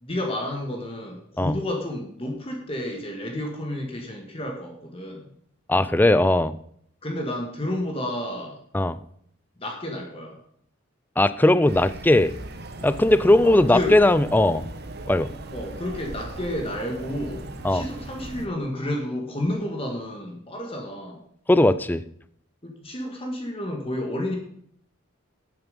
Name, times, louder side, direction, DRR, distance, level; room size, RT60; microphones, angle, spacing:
voice 1, 0.0-5.3 7.0-8.6 9.6-10.4 13.4-14.0 15.5-21.2 22.6-24.4, left 1 dB, 25° left, 1 dB, 1.8 m, -31 dB
voice 2, 5.7-6.6 8.7-9.0 11.2-12.3 12.8-14.7 15.1-15.3 17.6-17.8 21.5-22.0, left 1 dB, 10° left, 14 dB, 0.4 m, -18 dB
sound 1, 11.7-18.5, right 1 dB, 50° right, 1.1 m, -38 dB
12.0 x 9.0 x 5.3 m, 0.67 s
head